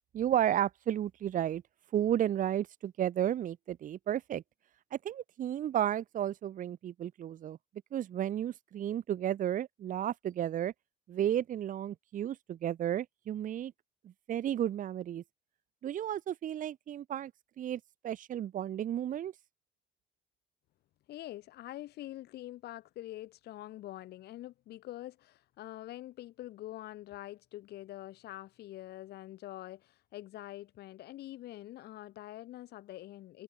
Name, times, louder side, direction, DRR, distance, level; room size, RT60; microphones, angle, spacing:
voice 1, 0.1-1.6 1.9-4.4 4.9-7.6 7.9-10.7 11.1-13.7 14.3-15.2 15.8-17.3 17.6-19.3, right 11 dB, 50° right, 1.1 m, -33 dB
voice 2, 21.1-33.4, left 15 dB, 75° left, 5.6 m, -45 dB
cardioid pair, 110°, 17 cm